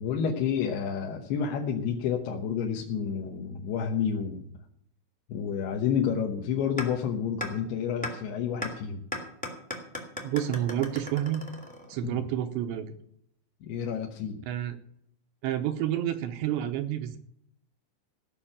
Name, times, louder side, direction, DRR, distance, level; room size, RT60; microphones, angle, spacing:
voice 1, 0.0-4.5 5.3-9.0 12.0-12.2 13.6-14.4, left 7 dB, 70° left, 1 dB, 2.7 m, -30 dB
sound 1, 6.8-6.9 7.4-7.5 8.0-8.1 8.6-8.7 9.1-12.0, left 1 dB, 5° left, 0.7 m, -35 dB
voice 2, 10.2-11.4 11.9-13.0 14.5-14.8 15.4-17.2, right 11 dB, 80° right, 7 dB, 2.8 m, -29 dB
16.0 x 6.2 x 8.7 m, 0.70 s
omnidirectional pair, 5.5 m